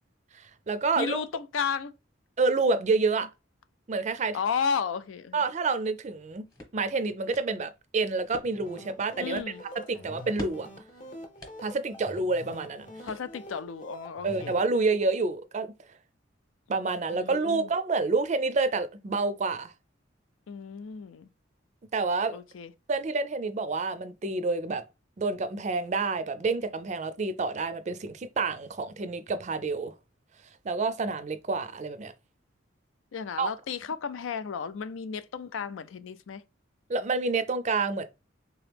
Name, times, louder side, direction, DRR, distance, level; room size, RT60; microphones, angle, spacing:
voice 1, 0.3-1.2 2.4-3.3 3.9-4.4 5.3-6.4 6.7-9.4 9.9-10.7 11.6-12.9 14.2-15.7 16.7-19.7 21.9-22.4 22.9-24.8 25.2-29.9 30.6-32.1 33.4-33.5 36.9-38.1, right 3 dB, 35° right, 0.4 m, -28 dB
voice 2, 1.0-1.9 4.3-5.4 9.2-9.6 9.9-10.1 13.0-14.5 17.1-17.7 20.5-21.3 22.3-22.7 33.1-36.4, left 6 dB, 85° left, 0.4 m, -33 dB
sound 1, 6.1-13.7, left 1 dB, 20° left, 1.0 m, -48 dB
sound 2, 8.4-14.6, equal, 40° left, 0.8 m, -45 dB
3.6 x 3.0 x 3.3 m
head